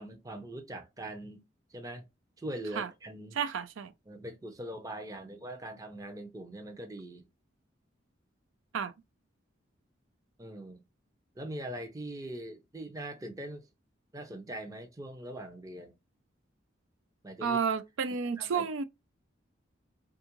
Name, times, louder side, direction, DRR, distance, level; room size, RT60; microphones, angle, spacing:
voice 1, 0.0-1.4 1.7-2.0 2.4-3.4 4.1-7.2 10.4-10.8 11.4-13.7 14.1-15.9 17.2-17.6 18.4-18.7, right 1 dB, 15° right, 0.5 m, -42 dB
voice 2, 3.3-3.9 8.7-8.9 17.4-18.8, right 6 dB, 80° right, 0.4 m, -31 dB
3.6 x 2.4 x 2.9 m
head